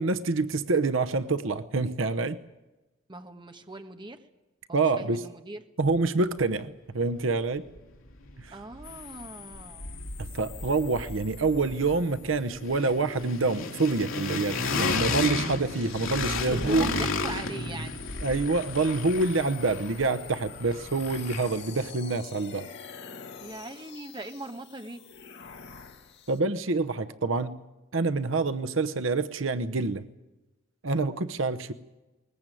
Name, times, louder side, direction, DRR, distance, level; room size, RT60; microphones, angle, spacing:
voice 1, 0.0-2.4 4.7-5.3 5.8-7.6 8.4-8.6 10.2-17.1 18.2-22.7 26.3-27.6 27.9-30.0 30.8-31.7, right 3 dB, 70° right, 11 dB, 0.9 m, -27 dB
voice 2, 3.1-4.2 4.7-5.6 8.5-10.0 16.5-18.1 23.4-25.0, right 2 dB, 25° right, 7 dB, 1.4 m, -40 dB
sound 1, 7.7-7.8 8.1-9.2 9.5-21.7, left 3 dB, 90° left, 2.5 m, -33 dB
sound 2, 8.8-26.4, left 8 dB, 60° left, 2.4 m, -47 dB
21.5 x 20.0 x 9.2 m, 1.1 s
head